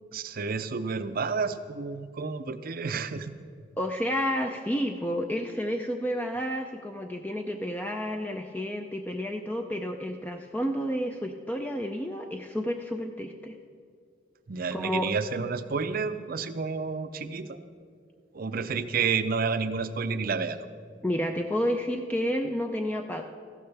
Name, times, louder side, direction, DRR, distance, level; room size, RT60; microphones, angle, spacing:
voice 1, 0.1-3.3 14.5-17.6 18.3-20.7, right 5 dB, 50° right, 11 dB, 0.5 m, -30 dB
voice 2, 3.8-13.6 14.7-15.1 21.0-23.2, equal, 10° left, 4 dB, 0.4 m, -30 dB
14.5 x 12.5 x 3.4 m, 2.2 s
head